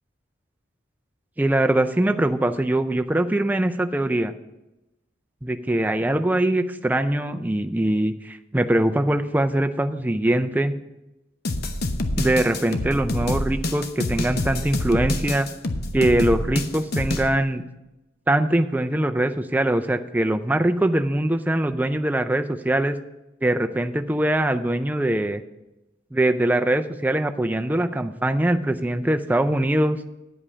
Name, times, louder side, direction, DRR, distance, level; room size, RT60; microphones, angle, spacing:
voice 1, 1.4-4.3 5.4-10.7 12.2-15.5 15.9-17.6 18.3-23.0 23.4-25.4 26.1-30.0, right 1 dB, 10° right, 7 dB, 0.4 m, -22 dB
sound 1, 11.4-17.3, left 1 dB, 50° left, 0.8 m, -27 dB
9.7 x 5.3 x 7.3 m, 0.98 s
head